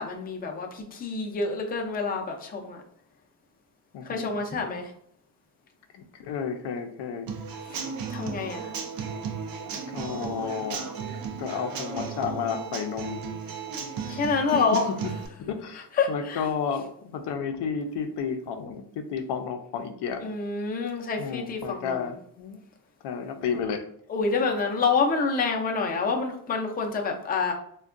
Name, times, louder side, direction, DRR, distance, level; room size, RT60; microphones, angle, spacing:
voice 1, 0.0-2.8 4.0-4.9 7.7-7.8 8.1-8.7 14.1-14.9 16.0-16.5 20.2-22.0 24.1-27.5, left 4 dB, 25° left, 1 dB, 0.4 m, -27 dB
voice 2, 3.9-4.4 5.9-7.3 9.9-10.9 11.4-13.2 14.1-14.2 14.5-14.6 15.4-20.3 21.2-22.6 23.0-23.8, left 6 dB, 75° left, 7 dB, 0.5 m, -32 dB
Human voice / Acoustic guitar / Drum, 7.3-15.3, right 6 dB, 60° right, 0.5 m, -35 dB
3.4 x 2.2 x 2.4 m, 0.66 s
cardioid pair, 110°, 41 cm